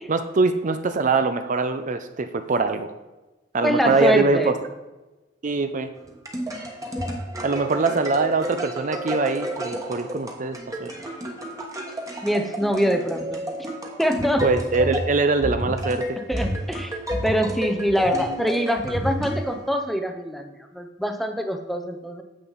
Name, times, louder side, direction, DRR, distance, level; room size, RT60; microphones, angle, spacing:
voice 1, 0.1-2.9 3.5-4.5 5.4-5.9 7.4-10.9 14.4-16.0, right 3 dB, 40° right, 9 dB, 0.5 m, -23 dB
voice 2, 3.6-4.5 12.2-13.4 14.0-14.5 16.3-17.0 17.2-22.2, equal, ahead, 5 dB, 0.6 m, -24 dB
sound 1, 6.0-19.8, equal, 20° right, 1.3 m, -31 dB
9.5 x 7.5 x 4.0 m, 1.1 s
head